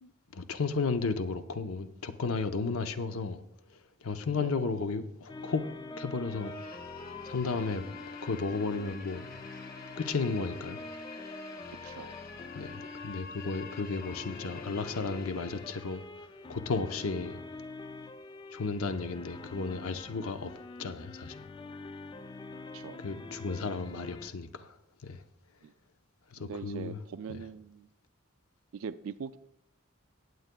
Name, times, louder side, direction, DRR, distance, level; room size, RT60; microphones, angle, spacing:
voice 1, 0.0-3.4 4.0-5.6 6.0-6.5 7.2-7.9 8.2-9.3 10.0-10.8 12.5-16.0 16.5-17.4 18.5-20.5 20.8-21.4 23.0-24.7 25.0-25.2 26.3-27.0 27.3-27.4, left 4 dB, 80° left, 0.7 m, -33 dB
sound 1, 5.3-24.3, left 3 dB, 20° left, 0.3 m, -45 dB
sound 2, 6.2-16.1, left 6 dB, 45° left, 0.7 m, -48 dB
voice 2, 11.8-12.1 17.2-17.3 22.7-23.0 25.6-25.7 26.4-27.9 28.7-29.4, right 6 dB, 70° right, 0.4 m, -42 dB
18.5 x 8.0 x 2.2 m
head